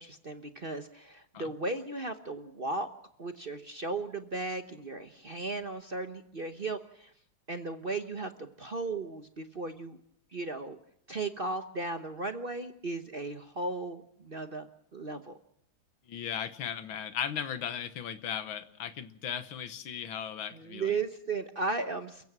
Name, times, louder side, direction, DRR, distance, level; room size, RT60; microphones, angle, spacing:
voice 1, 0.0-2.9 3.2-7.1 7.5-10.0 10.3-10.8 11.1-15.4 20.5-22.2, right 3 dB, 40° right, 8 dB, 0.8 m, -36 dB
voice 2, 16.1-21.0, left 8 dB, 70° left, 12 dB, 2.0 m, -37 dB
29.5 x 15.5 x 6.1 m, 0.74 s
omnidirectional pair, 2.3 m